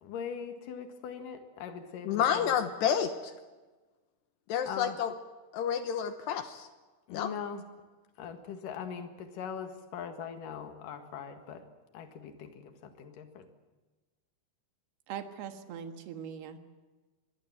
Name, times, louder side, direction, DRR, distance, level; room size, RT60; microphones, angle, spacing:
voice 1, 0.0-2.6 4.7-5.0 7.1-7.6 8.2-11.7 11.9-13.5, left 7 dB, 55° left, 6 dB, 2.6 m, -41 dB
voice 2, 2.1-3.1 4.5-5.1 5.5-6.7 7.1-7.3, left 8 dB, 75° left, 9 dB, 2.6 m, -29 dB
voice 3, 15.1-16.6, right 8 dB, 65° right, 7 dB, 3.0 m, -41 dB
24.5 x 21.5 x 7.6 m, 1.3 s
omnidirectional pair, 6.0 m